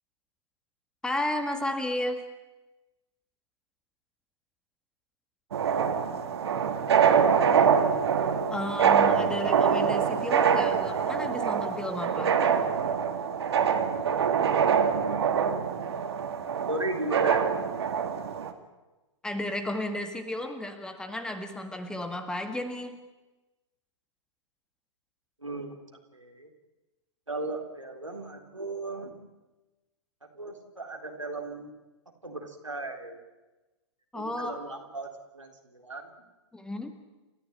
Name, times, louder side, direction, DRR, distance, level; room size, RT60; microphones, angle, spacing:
voice 1, 1.0-2.2 8.5-12.4 19.2-23.0 34.1-34.5 36.5-37.0, left 1 dB, 5° left, 8 dB, 1.8 m, -33 dB
sound 1, 5.5-18.5, right 7 dB, 60° right, 2.1 m, -25 dB
voice 2, 16.7-17.7 25.4-25.9 26.1-26.5 27.3-29.2 30.3-31.7 32.2-33.2 34.1-36.1, right 2 dB, 85° right, 2 dB, 3.8 m, -36 dB
29.5 x 14.0 x 9.0 m, 1.1 s
figure-of-eight pair, 110°, 16 cm